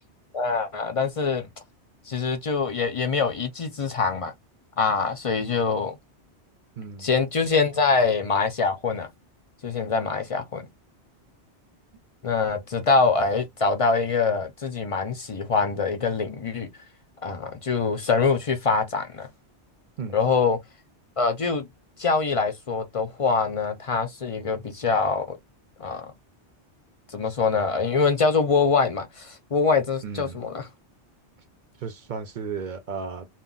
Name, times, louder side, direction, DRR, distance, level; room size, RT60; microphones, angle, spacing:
voice 1, 0.3-1.5 2.1-4.3 4.8-6.0 7.0-9.1 9.6-10.7 12.2-16.7 17.2-19.3 20.1-20.6 21.2-21.7 22.0-25.4 25.8-26.1 27.1-30.7, left 4 dB, 50° left, 0.4 m, -24 dB
voice 2, 6.8-7.1 20.0-20.2 30.0-30.4 31.8-33.3, right 5 dB, 55° right, 0.6 m, -34 dB
2.3 x 2.2 x 3.7 m
omnidirectional pair, 1.2 m